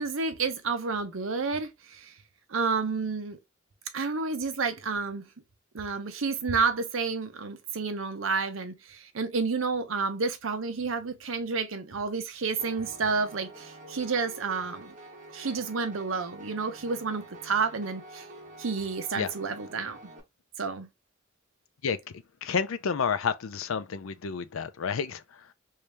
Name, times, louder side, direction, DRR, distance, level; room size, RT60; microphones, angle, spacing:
voice 1, 0.0-2.1 2.5-3.4 3.9-5.3 5.7-14.9 15.3-18.3 18.6-20.0 20.6-20.9, right 4 dB, 80° right, 0.8 m, -30 dB
Piano, 12.6-20.2, right 1 dB, 40° right, 1.0 m, -47 dB
voice 2, 22.4-25.5, left 6 dB, 85° left, 0.5 m, -30 dB
3.2 x 2.7 x 3.3 m
head